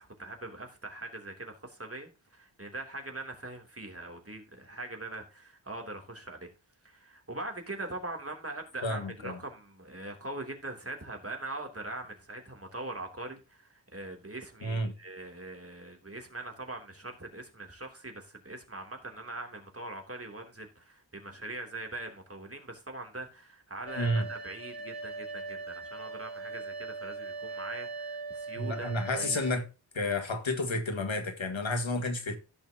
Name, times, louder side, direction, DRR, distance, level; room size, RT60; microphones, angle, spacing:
voice 1, 0.0-6.5 6.8-29.4, right 2 dB, 30° right, 3.1 m, -42 dB
voice 2, 8.8-9.4 14.6-14.9 24.0-24.3 28.6-29.6 29.9-32.4, left 1 dB, 85° left, 2.1 m, -31 dB
sound 1, 23.9-29.5, right 3 dB, 30° left, 3.5 m, -40 dB
16.0 x 6.5 x 2.9 m
wide cardioid pair, 70°, 45 cm